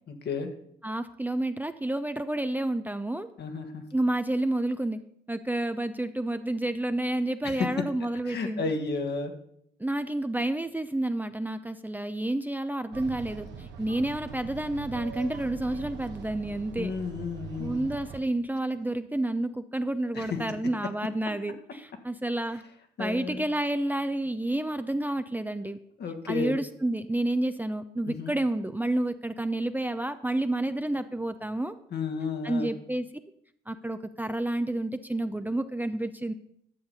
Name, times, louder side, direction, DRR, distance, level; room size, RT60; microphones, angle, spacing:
voice 1, 0.1-0.5 3.4-3.8 7.4-7.9 8.3-9.3 16.7-17.9 20.1-20.4 23.0-23.5 26.0-26.6 28.0-28.3 31.9-32.7, left 4 dB, 60° left, 5 dB, 1.6 m, -32 dB
voice 2, 0.8-3.3 3.9-5.0 5.3-8.7 9.8-16.9 17.6-22.6 23.0-25.8 26.3-31.7 32.4-33.1 33.7-36.3, right 1 dB, 10° right, 9 dB, 0.6 m, -30 dB
sound 1, 12.9-18.2, right 7 dB, 65° right, 1.4 m, -42 dB
10.5 x 7.1 x 5.4 m, 0.71 s
hypercardioid pair, 55°, 19 cm